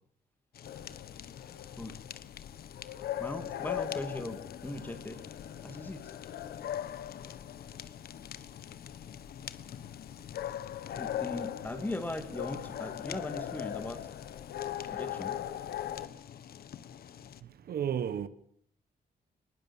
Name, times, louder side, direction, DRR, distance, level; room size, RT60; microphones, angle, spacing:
Fire, 0.5-17.4, left 9 dB, 70° left, 1.2 m, -48 dB
sound 1, 0.6-16.1, left 11 dB, 85° left, 1.4 m, -40 dB
voice 1, 3.2-5.2 5.6-6.1 10.9-14.1 14.9-15.4, left 1 dB, 10° left, 2.7 m, -39 dB
voice 2, 17.4-18.3, right 9 dB, 70° right, 1.3 m, -33 dB
21.5 x 20.0 x 7.3 m
cardioid pair, 135°, 16 cm